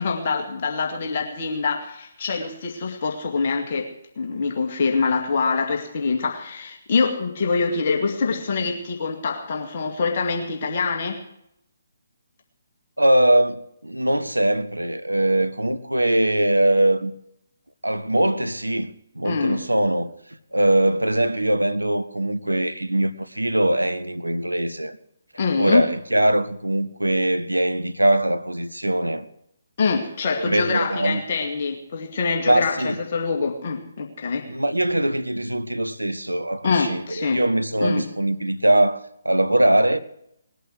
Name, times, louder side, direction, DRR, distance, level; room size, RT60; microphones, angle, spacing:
voice 1, 0.0-11.2 19.2-19.6 25.4-25.9 29.8-34.5 36.6-37.4 37.8-38.0, left 4 dB, 45° left, 2.2 m, -25 dB
voice 2, 13.0-17.1 17.8-20.1 20.5-25.0 25.6-29.3 30.3-31.2 32.5-33.0 34.5-40.0, right 1 dB, 85° right, 1.1 m, -21 dB
20.0 x 8.1 x 7.8 m
figure-of-eight pair, 140°, 0 cm